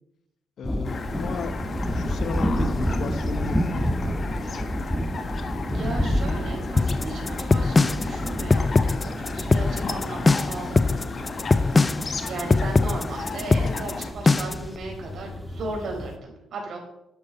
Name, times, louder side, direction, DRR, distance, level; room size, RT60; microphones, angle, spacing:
voice 1, 0.6-4.6, left 6 dB, 65° left, 10 dB, 1.1 m, -36 dB
sound 1, 0.6-16.2, equal, 5° left, 1.4 m, -30 dB
sound 2, 0.8-14.1, left 4 dB, 45° left, 1.5 m, -35 dB
voice 2, 5.6-16.8, right 3 dB, 65° right, 0 dB, 4.7 m, -36 dB
sound 3, 6.8-14.7, left 3 dB, 25° left, 0.4 m, -21 dB
11.5 x 9.6 x 4.2 m, 0.87 s
cardioid pair, 90°, 0 cm